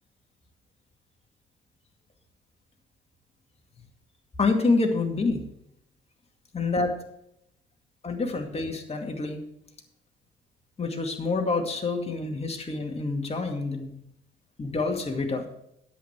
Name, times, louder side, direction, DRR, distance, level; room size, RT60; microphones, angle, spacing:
voice 1, 4.4-5.4 6.5-7.0 8.0-9.4 10.8-13.9 14.6-15.5, left 3 dB, 30° left, 3 dB, 2.3 m, -27 dB
10.0 x 8.5 x 4.7 m, 0.77 s
cardioid pair, 90°, 20 cm